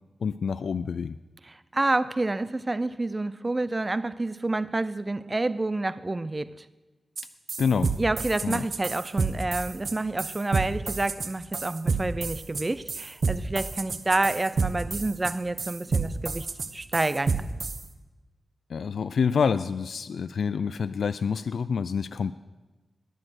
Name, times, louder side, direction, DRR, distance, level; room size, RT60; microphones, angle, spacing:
voice 1, 0.2-1.2 7.6-7.9 8.4-8.7 18.7-22.3, left 6 dB, 80° left, 13 dB, 0.4 m, -27 dB
voice 2, 1.4-6.6 8.0-16.5 16.7-17.4, right 2 dB, 25° right, 14 dB, 0.5 m, -28 dB
sound 1, 7.2-7.3 7.5-17.8, right 4 dB, 55° right, 1.1 m, -29 dB
20.0 x 9.8 x 6.4 m, 1.2 s
wide cardioid pair, 130°, 0 cm